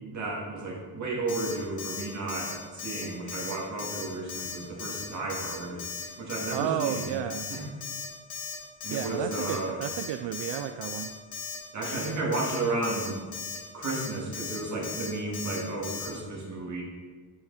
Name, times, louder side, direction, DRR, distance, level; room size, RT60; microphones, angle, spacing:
voice 1, 0.1-7.2 7.5-7.6 8.8-9.8 11.7-13.2 13.7-16.8, right 2 dB, 40° right, -4 dB, 2.6 m, -33 dB
Alarm, 1.3-1.5 1.8-2.0 2.3-2.5 2.8-3.0 3.3-3.5 3.8-4.0 4.3-4.5 4.8-5.0 5.3-5.5 5.8-6.0 6.3-6.5 6.8-7.0 7.3-7.5 7.8-8.0 8.3-8.5 8.8-9.0 9.3-9.6 9.8-10.1 10.3-10.6 10.8-11.1 11.3-11.6 11.8-12.1 12.3-12.6 12.8-13.1 13.3-13.6 13.8-14.1 14.3-14.6 14.8-15.1 15.3-15.6 15.8-16.1, left 7 dB, 80° left, 2.0 m, -37 dB
voice 2, 6.5-7.5 8.9-11.2, right 10 dB, 70° right, 9 dB, 0.5 m, -32 dB
7.5 x 7.1 x 4.2 m, 1.5 s
cardioid pair, 125°, 44 cm